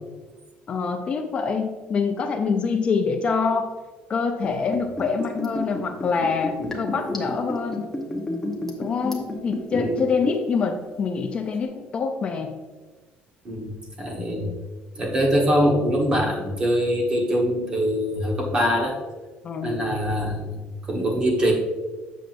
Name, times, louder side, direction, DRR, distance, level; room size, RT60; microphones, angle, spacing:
voice 1, 0.7-3.7 4.1-7.9 8.8-12.5 14.2-14.6 19.4-20.0, left 5 dB, 30° left, 5 dB, 0.4 m, -25 dB
Liquid, 4.4-10.6 10.8-10.9, left 1 dB, 10° left, 1.0 m, -30 dB
voice 2, 9.7-10.0 13.4-13.7 14.0-14.5 14.9-18.9 19.6-20.6 20.9-21.5, equal, 25° right, 0 dB, 1.3 m, -23 dB
7.6 x 6.6 x 2.6 m, 1.3 s
cardioid pair, 170°, 4 cm